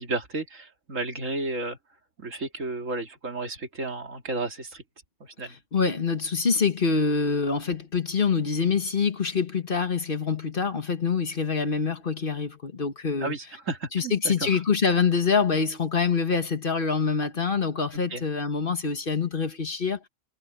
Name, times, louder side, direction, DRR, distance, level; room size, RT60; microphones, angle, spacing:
voice 1, 0.0-1.8 2.2-4.8 5.2-5.6 13.2-14.6 18.1-18.2, right 2 dB, 75° right, 2.8 m, -32 dB
voice 2, 5.7-13.3 13.9-20.0, left 5 dB, 45° left, 1.5 m, -25 dB
omnidirectional pair, 1.3 m